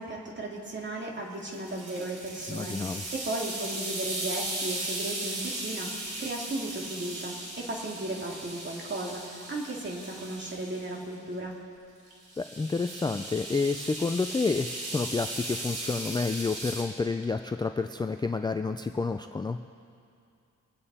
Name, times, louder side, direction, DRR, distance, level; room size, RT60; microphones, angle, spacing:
voice 1, 0.0-11.5, right 2 dB, 35° right, -2 dB, 2.4 m, -35 dB
sound 1, 1.4-11.0 12.1-16.8, right 1 dB, 85° right, 3.5 m, -37 dB
voice 2, 2.5-3.0 12.4-19.6, left 4 dB, 15° left, 7 dB, 0.3 m, -29 dB
25.0 x 8.8 x 4.2 m, 2.6 s
wide cardioid pair, 135°, 31 cm